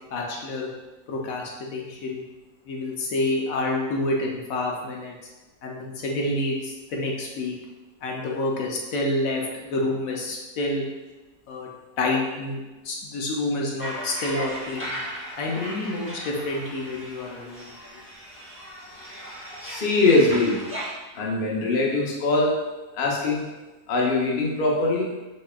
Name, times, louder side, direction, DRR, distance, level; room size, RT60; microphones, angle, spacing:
voice 1, 0.1-0.7 1.1-2.2 2.7-5.1 5.6-7.5 8.0-10.8 11.5-11.7 12.0-15.0 15.4-17.6, left 2 dB, 70° left, -1 dB, 1.0 m, -28 dB
sound 1, 13.8-20.9, equal, 15° right, 0.5 m, -37 dB
voice 2, 19.6-20.6 21.1-22.5 22.9-23.4 23.9-25.1, left 2 dB, 50° left, -2 dB, 0.7 m, -22 dB
4.2 x 3.5 x 2.2 m, 1.1 s
omnidirectional pair, 1.6 m